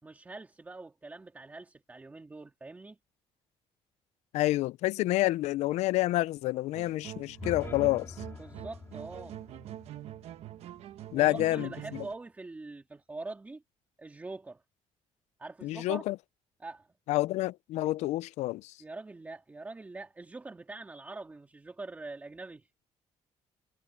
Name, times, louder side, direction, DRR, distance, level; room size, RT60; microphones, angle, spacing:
voice 1, 0.0-3.0 8.3-9.4 11.1-13.6 14.0-14.6 15.4-16.0 16.6-16.9 18.8-22.7, right 3 dB, 15° right, 2.5 m, -44 dB
voice 2, 4.3-8.2 11.1-12.0 15.6-16.2 17.1-18.7, left 17 dB, 90° left, 0.5 m, -28 dB
sound 1, 6.7-12.1, right 12 dB, 70° right, 1.2 m, -44 dB
sound 2, 7.2-11.3, left 4 dB, 20° left, 5.0 m, -46 dB
cardioid pair, 160°, 11 cm